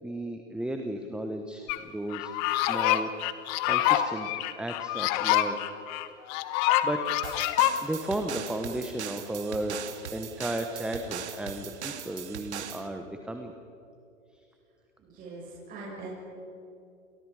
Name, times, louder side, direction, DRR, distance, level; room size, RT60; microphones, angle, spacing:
voice 1, 0.0-5.7 6.2-6.4 6.8-7.1 7.8-13.5 14.3-14.4, right 1 dB, ahead, 5 dB, 1.3 m, -35 dB
sound 1, 1.7-1.8 2.1-7.7, left 14 dB, 35° left, 1.4 m, -26 dB
sound 2, 7.2-12.9, right 8 dB, 60° right, 2.1 m, -40 dB
voice 2, 15.0-16.3, right 2 dB, 20° right, -5 dB, 6.7 m, -42 dB
29.5 x 28.5 x 5.0 m, 2.6 s
figure-of-eight pair, 115°, 38 cm